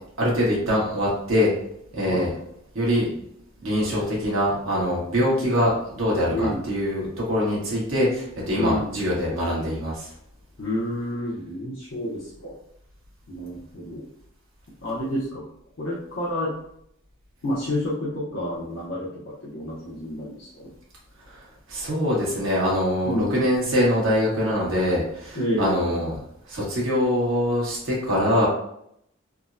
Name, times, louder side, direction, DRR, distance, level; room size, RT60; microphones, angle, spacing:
voice 1, 0.2-1.5 1.9-2.3 2.7-3.1 3.6-10.1 21.7-26.2 26.5-28.5, equal, 75° right, -5 dB, 1.3 m, -23 dB
voice 2, 6.3-6.6 8.6-8.9 10.6-12.6 13.3-14.1 14.8-15.4 15.8-16.5 17.4-20.7 23.0-23.5 25.3-26.0, left 1 dB, 75° left, -7 dB, 0.7 m, -29 dB
3.5 x 2.1 x 2.5 m, 0.73 s
head